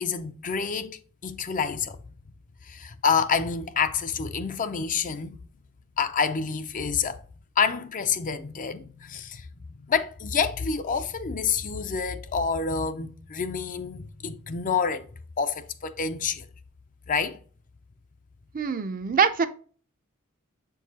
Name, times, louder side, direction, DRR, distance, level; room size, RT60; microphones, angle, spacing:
voice 1, 0.0-2.0 2.6-5.4 6.0-7.2 7.6-9.5 9.9-15.1 15.4-16.5 17.1-17.4, left 6 dB, 35° left, 0.5 m, -28 dB
voice 2, 18.5-19.5, right 6 dB, 40° right, 0.5 m, -23 dB
7.4 x 4.6 x 2.8 m
head